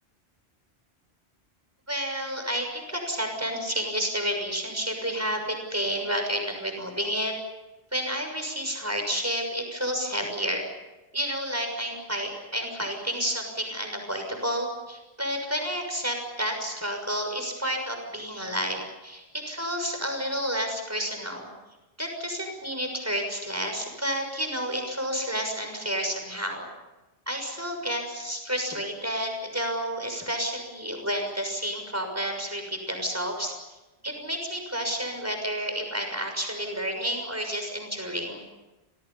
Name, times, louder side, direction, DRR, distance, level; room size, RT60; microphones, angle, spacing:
voice 1, 1.9-7.3 7.9-10.7 11.1-21.5 22.0-26.7 27.3-33.5 34.0-38.4, equal, 15° right, 4 dB, 6.4 m, -30 dB
30.0 x 25.5 x 5.7 m, 1.1 s
omnidirectional pair, 1.1 m